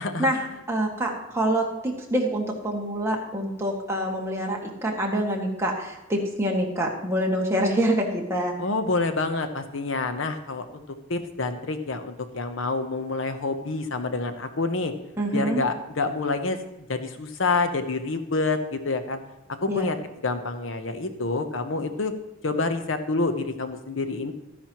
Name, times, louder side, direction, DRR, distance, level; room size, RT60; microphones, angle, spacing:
voice 1, 0.2-8.6 15.2-15.6 19.7-19.9, right 1 dB, 15° right, -2 dB, 1.9 m, -26 dB
voice 2, 8.6-10.8 11.1-14.9 15.3-19.2 19.6-20.0 20.2-22.1 22.4-24.3, left 3 dB, 65° left, 8 dB, 0.9 m, -27 dB
13.0 x 10.0 x 3.0 m, 1.0 s
head